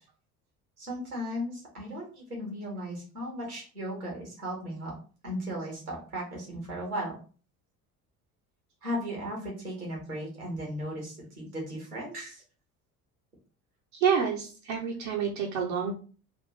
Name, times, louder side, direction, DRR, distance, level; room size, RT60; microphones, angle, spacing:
voice 1, 0.8-4.9 5.2-7.2 8.8-12.4, equal, 85° right, -1 dB, 1.4 m, -36 dB
voice 2, 13.9-15.9, right 7 dB, 60° right, -1 dB, 0.9 m, -28 dB
3.4 x 2.6 x 3.1 m, 0.38 s
figure-of-eight pair, 60°, 44 cm